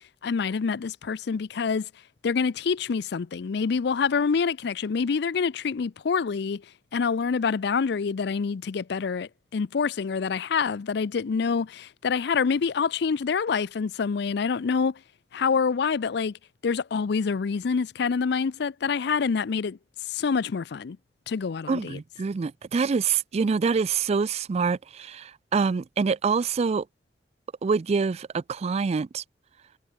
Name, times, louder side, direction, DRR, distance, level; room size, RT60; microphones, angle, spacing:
voice 1, 0.2-1.9 2.2-6.6 6.9-15.0 15.3-16.3 16.6-19.8 20.1-21.0 21.3-22.0, left 5 dB, 65° left, 0.4 m, -26 dB
voice 2, 21.7-26.9 27.6-29.2, right 5 dB, 35° right, 0.3 m, -26 dB
head